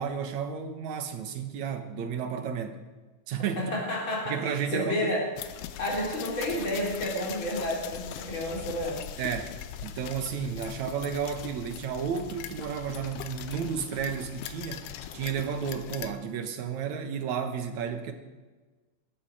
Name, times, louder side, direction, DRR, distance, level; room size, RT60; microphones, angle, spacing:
voice 1, 0.0-2.8 3.3-3.6 4.3-5.2 9.2-9.5 9.8-14.8 15.1-18.1, right 7 dB, 75° right, 7 dB, 2.6 m, -32 dB
voice 2, 3.6-4.4 4.7-5.3 5.8-9.0, left 1 dB, 40° left, -3 dB, 4.7 m, -30 dB
sound 1, 5.4-16.1, left 11 dB, 90° left, 2.2 m, -41 dB
20.5 x 13.0 x 4.9 m, 1.3 s
omnidirectional pair, 3.3 m